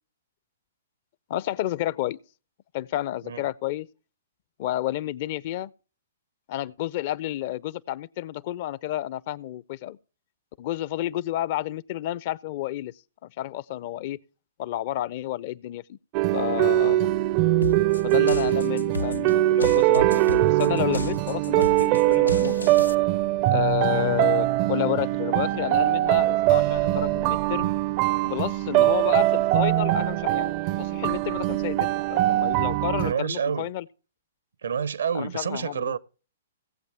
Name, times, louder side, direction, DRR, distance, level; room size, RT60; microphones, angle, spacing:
voice 1, 1.3-2.2 2.7-3.9 4.6-5.7 6.5-10.0 10.6-12.9 13.2-14.2 14.6-16.0 16.3-17.1 18.0-22.7 23.5-27.7 28.2-30.5 30.8-33.8 35.1-35.9, left 14 dB, 45° left, 0.5 m, -30 dB
sound 1, 16.1-33.1, right 16 dB, 35° right, 0.4 m, -22 dB
sound 2, 17.6-22.9, left 3 dB, 90° left, 0.6 m, -34 dB
voice 2, 33.0-33.7 34.6-36.0, right 7 dB, 75° right, 0.7 m, -29 dB
17.5 x 7.8 x 3.4 m
figure-of-eight pair, 120°, 0 cm